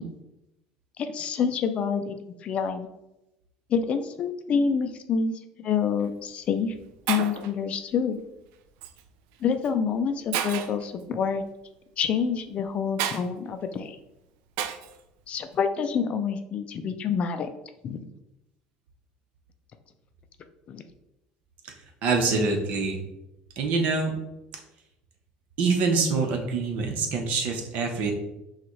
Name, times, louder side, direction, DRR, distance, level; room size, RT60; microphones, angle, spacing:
voice 1, 1.0-2.2 2.4-2.9 3.7-6.7 7.1-8.2 9.4-11.4 12.0-14.0 15.3-17.5 17.8-18.0 20.7-20.8, left 6 dB, 45° left, 8 dB, 0.4 m, -27 dB
Shatter, 5.8-6.1 6.8-6.9 7.1-7.5 8.8-9.0 9.6-9.7 10.3-10.8 13.0-13.2 14.6-15.0, right 9 dB, 80° right, 0.4 m, -30 dB
voice 2, 22.0-23.0 23.6-24.1 25.6-28.1, right 4 dB, 65° right, 3 dB, 0.9 m, -25 dB
5.9 x 2.4 x 3.1 m, 0.91 s
supercardioid pair, 105°, 3 cm